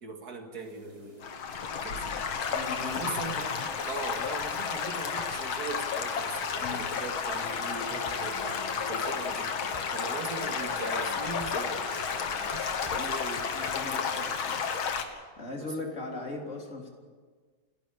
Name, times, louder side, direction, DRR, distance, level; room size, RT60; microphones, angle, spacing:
voice 1, 0.0-1.3 1.7-2.2 2.8-3.5 3.9-9.5 9.9-13.5 14.2-14.3 15.6-15.7, right 4 dB, 50° right, 4 dB, 2.5 m, -40 dB
sound 1, 0.5-14.3, right 1 dB, 20° right, 5.8 m, -55 dB
Stream / Gurgling / Trickle dribble, 1.2-15.0, left 6 dB, 85° left, 2.3 m, -32 dB
voice 2, 2.5-3.1 3.5-3.8 6.6-6.9 12.8-13.3 13.5-14.6 15.4-16.9, left 3 dB, 35° left, 0 dB, 3.7 m, -39 dB
sound 2, 7.9-13.8, left 2 dB, 15° left, 0.8 m, -44 dB
29.0 x 11.5 x 8.5 m, 1.5 s
omnidirectional pair, 2.2 m